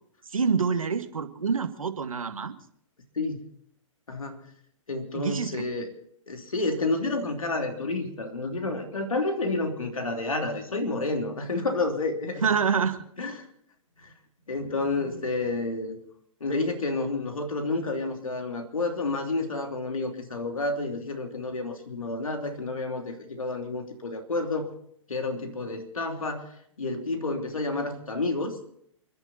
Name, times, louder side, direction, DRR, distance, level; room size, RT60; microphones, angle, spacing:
voice 1, 0.3-2.6 5.1-5.7 12.4-13.0, right 6 dB, 85° right, 7 dB, 1.8 m, -26 dB
voice 2, 4.1-4.4 4.9-5.9 6.3-12.5 13.2-13.5 14.0-14.1 14.5-16.0 16.4-24.7 25.1-26.4 26.8-28.6, left 2 dB, 85° left, 4 dB, 3.1 m, -30 dB
29.0 x 10.5 x 4.3 m, 0.68 s
hypercardioid pair, 125°, 17 cm